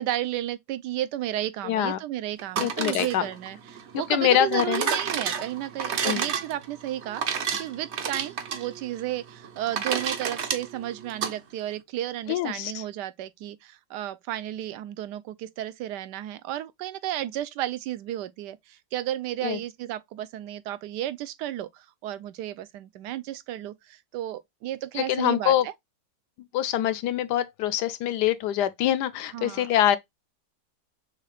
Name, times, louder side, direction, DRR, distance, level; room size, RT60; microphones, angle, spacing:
voice 1, 0.0-25.7 29.3-29.7, right 13 dB, 75° right, 1.1 m, -33 dB
voice 2, 1.6-2.0 2.6-3.3 4.1-4.9 6.0-6.3 12.3-12.8 19.4-19.6 24.9-25.7 26.5-30.0, left 11 dB, 75° left, 1.1 m, -24 dB
Ice Machine, 2.4-11.3, right 6 dB, 55° right, 0.8 m, -31 dB
6.4 x 2.4 x 3.3 m
omnidirectional pair, 1.9 m